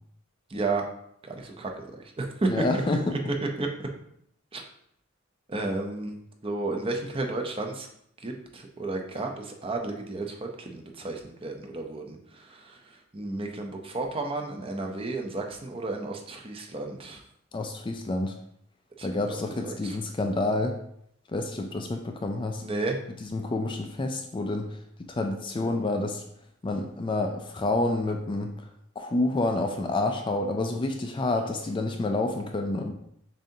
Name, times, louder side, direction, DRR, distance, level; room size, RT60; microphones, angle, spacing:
voice 1, 0.5-0.8 1.2-2.8 3.1-3.2 3.6-3.9 4.5-4.6 5.5-7.9 8.2-17.2 19.0-20.0 22.6-23.0, right 2 dB, 25° right, 2 dB, 0.6 m, -32 dB
voice 2, 2.5-3.2 17.5-18.3 19.0-20.8 21.3-22.6 23.2-24.8 25.1-26.2 26.6-28.5 29.0-32.9, left 2 dB, 25° left, 4 dB, 0.4 m, -28 dB
7.2 x 2.7 x 2.7 m, 0.71 s
head